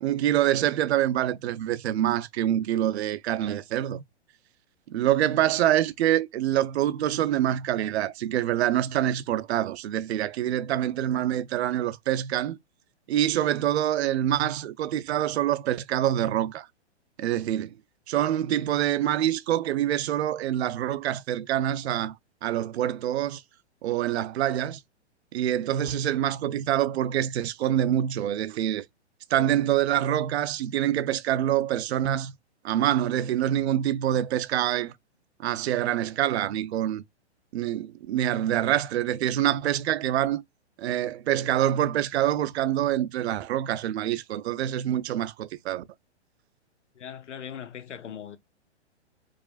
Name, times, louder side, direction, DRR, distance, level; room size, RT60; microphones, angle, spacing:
voice 1, 0.0-4.0 4.9-12.6 13.1-16.7 17.2-17.7 18.1-22.1 22.4-23.4 23.8-24.8 25.3-28.9 29.3-32.3 32.6-34.9 35.4-37.0 37.5-40.4 40.8-45.8, right 12 dB, 65° right, 0.5 m, -26 dB
voice 2, 47.0-48.4, left 8 dB, 90° left, 0.8 m, -39 dB
4.8 x 2.4 x 2.4 m
hypercardioid pair, 135°, 35 cm